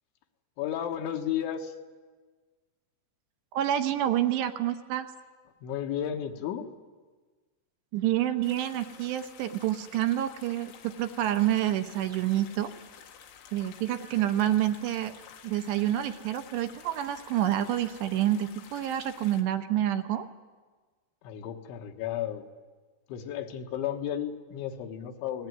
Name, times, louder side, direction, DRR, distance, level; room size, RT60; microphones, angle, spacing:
voice 1, 0.6-1.8 5.6-6.7 21.2-22.4 23.1-25.5, left 10 dB, 70° left, 6 dB, 3.6 m, -33 dB
voice 2, 3.5-5.1 7.9-12.7 13.5-15.1 15.4-20.3, right 12 dB, 75° right, 8 dB, 2.8 m, -28 dB
sound 1, 8.4-19.4, left 8 dB, 85° left, 4.5 m, -51 dB
29.5 x 19.5 x 9.5 m, 1.4 s
omnidirectional pair, 5.7 m